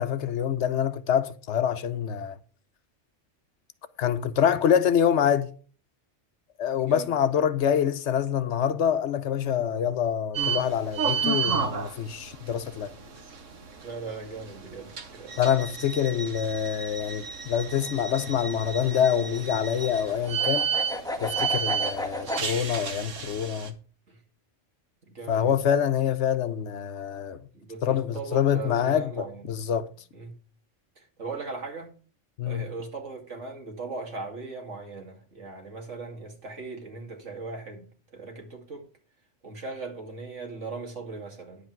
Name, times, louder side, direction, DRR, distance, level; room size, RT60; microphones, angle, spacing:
voice 1, 0.0-2.4 4.0-5.5 6.6-12.9 15.4-20.7 21.2-23.7 25.3-27.4 27.8-29.9 32.4-32.7, left 9 dB, 70° left, 1.0 m, -26 dB
voice 2, 6.8-7.1 13.0-13.1 13.8-15.4 24.1-24.2 25.0-25.6 27.5-29.6 30.1-30.3 31.0-31.9 32.4-38.8 39.4-41.7, right 4 dB, 75° right, 2.6 m, -39 dB
sound 1, 10.3-23.7, right 6 dB, 90° right, 1.6 m, -32 dB
sound 2, 17.7-22.5, left 1 dB, 5° left, 1.1 m, -35 dB
10.5 x 8.0 x 4.6 m
omnidirectional pair, 1.3 m